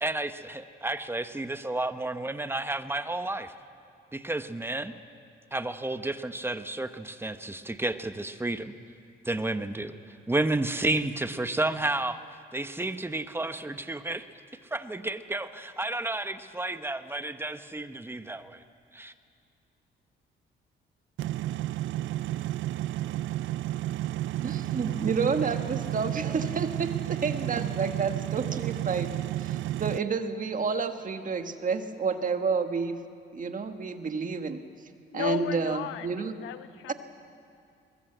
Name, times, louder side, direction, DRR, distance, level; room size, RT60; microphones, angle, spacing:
voice 1, 0.0-3.5 4.1-4.9 5.5-8.7 9.2-12.2 12.5-14.3 14.7-18.6 18.9-19.1, right 2 dB, 10° right, 10 dB, 1.0 m, -31 dB
sound 1, 21.2-30.0, right 14 dB, 75° right, 0.5 m, -32 dB
voice 2, 24.4-33.0 33.3-34.6 35.1-36.3 36.9-37.0, right 5 dB, 40° right, 7 dB, 1.5 m, -30 dB
voice 3, 35.1-36.1 36.4-36.9, left 13 dB, 85° left, 11 dB, 0.9 m, -34 dB
22.0 x 20.0 x 8.0 m, 2.4 s
cardioid pair, 90°, 20 cm